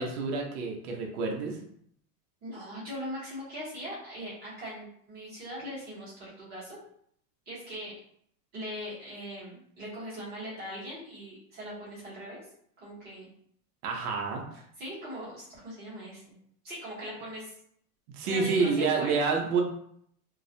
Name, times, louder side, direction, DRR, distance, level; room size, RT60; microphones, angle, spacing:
voice 1, 0.0-1.6 13.8-14.4 18.1-19.6, right 4 dB, 70° right, 1 dB, 0.7 m, -28 dB
voice 2, 2.4-6.8 7.5-7.9 8.5-12.4 12.8-13.3 14.8-16.4 16.6-17.5 18.2-19.2, equal, 20° right, -8 dB, 0.9 m, -40 dB
2.3 x 2.0 x 2.6 m, 0.66 s
supercardioid pair, 175°, 46 cm